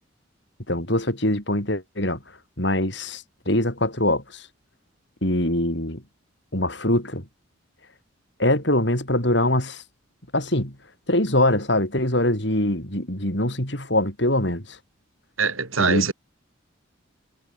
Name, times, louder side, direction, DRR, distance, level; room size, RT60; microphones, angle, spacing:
voice 1, 0.7-2.2 2.6-4.4 5.2-6.0 6.5-7.2 8.4-9.8 10.3-10.7 11.1-14.6 15.8-16.1, left 1 dB, 60° left, 6.4 m, -23 dB
voice 2, 15.4-16.1, right 5 dB, 90° right, 6.0 m, -23 dB
head